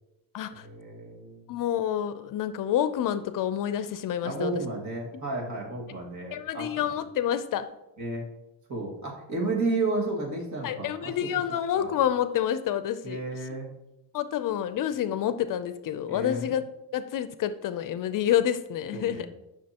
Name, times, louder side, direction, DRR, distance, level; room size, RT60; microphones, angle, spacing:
voice 1, 0.6-1.5 4.2-6.8 8.0-8.2 8.7-11.3 11.7-11.9 13.0-13.7 16.1-16.5 18.9-19.3, right 2 dB, 45° right, -1 dB, 2.1 m, -32 dB
voice 2, 1.5-4.5 6.3-7.7 10.6-13.2 14.1-16.6 16.9-19.3, left 10 dB, 55° left, 12 dB, 0.5 m, -28 dB
11.0 x 6.1 x 2.9 m, 0.92 s
cardioid pair, 135°, 39 cm